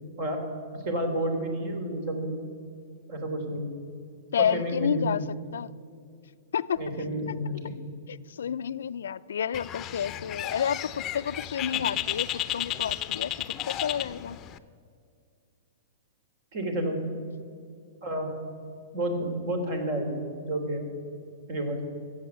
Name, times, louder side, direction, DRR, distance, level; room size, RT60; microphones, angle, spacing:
voice 1, 0.7-2.3 3.1-3.8 4.4-5.3 6.8-7.7 11.7-11.8 16.5-17.0 18.0-18.3 18.9-20.9 21.5-21.8, right 1 dB, 55° right, 5 dB, 3.2 m, -30 dB
voice 2, 4.3-5.2 5.5-5.7 6.5-6.8 7.3-7.4 8.1-13.3 13.7-14.4, left 8 dB, 80° left, 16 dB, 0.4 m, -30 dB
Bird, 9.5-14.6, left 12 dB, 30° left, 0.6 m, -33 dB
15.0 x 7.9 x 8.3 m, 2.3 s
hypercardioid pair, 125°, 0 cm